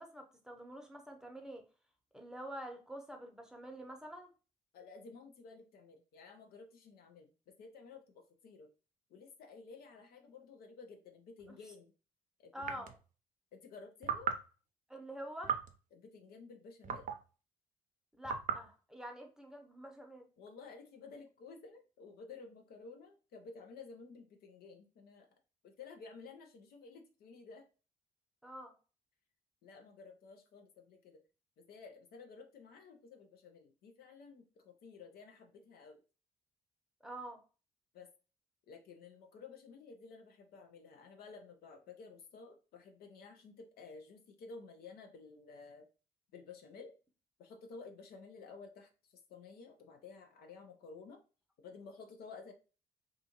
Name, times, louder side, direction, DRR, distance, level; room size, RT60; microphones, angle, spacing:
voice 1, 0.0-1.6 2.1-4.3 12.5-12.9 14.9-15.6 18.2-20.3 28.4-28.7 37.0-37.4, right 1 dB, 5° right, 3 dB, 0.8 m, -47 dB
voice 2, 4.7-8.7 9.1-11.9 12.4-12.9 13.5-14.4 15.9-17.1 20.4-25.3 25.6-27.6 29.6-31.2 31.6-36.0 37.9-38.1 38.7-45.9 46.3-46.9 47.4-51.2 51.6-52.5, left 4 dB, 65° left, 4 dB, 0.6 m, -53 dB
sound 1, 11.4-11.5 12.6-13.0 14.0-14.5 15.4-15.8 16.8-17.2 18.2-18.7, right 7 dB, 50° right, 0.5 m, -37 dB
2.5 x 2.4 x 2.9 m, 0.34 s
hypercardioid pair, 50°, 17 cm